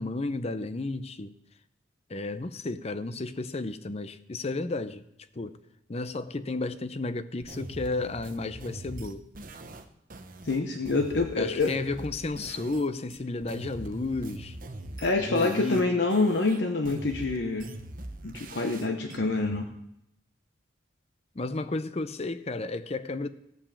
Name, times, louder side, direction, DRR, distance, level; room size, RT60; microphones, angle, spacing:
voice 1, 0.0-1.3 2.1-5.0 5.4-5.6 5.9-9.3 11.4-14.6 15.2-15.9 21.4-23.3, left 2 dB, 35° left, 0.6 m, -32 dB
sound 1, 7.4-12.8 13.1-15.8 16.1-19.2, right 1 dB, 45° right, 0.9 m, -43 dB
voice 2, 10.4-11.7 15.0-17.7 18.2-19.7, left 3 dB, 65° left, 0.9 m, -26 dB
16.0 x 5.9 x 6.9 m
head